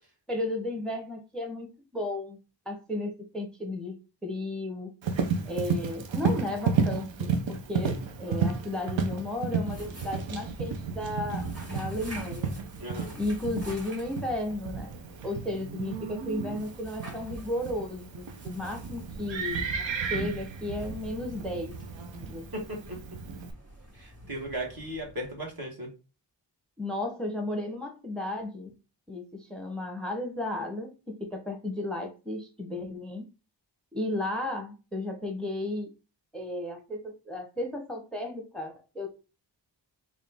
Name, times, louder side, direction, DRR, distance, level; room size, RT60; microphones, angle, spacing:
voice 1, 0.3-2.4 2.7-4.0 4.2-4.9 5.4-12.5 13.2-19.7 20.0-21.7 22.1-22.5 26.8-28.8 29.1-33.2 33.9-35.9 36.3-39.1, left 1 dB, ahead, 3 dB, 0.6 m, -34 dB
Livestock farm animals working animals, 5.0-23.5, right 5 dB, 85° right, 0.6 m, -33 dB
sound 1, 9.5-25.6, right 1 dB, 35° right, 1.7 m, -49 dB
voice 2, 12.8-13.2 22.5-23.0 23.9-25.9, right 1 dB, 55° right, 0 dB, 1.4 m, -36 dB
4.0 x 2.4 x 3.4 m, 0.32 s
wide cardioid pair, 70°, 44 cm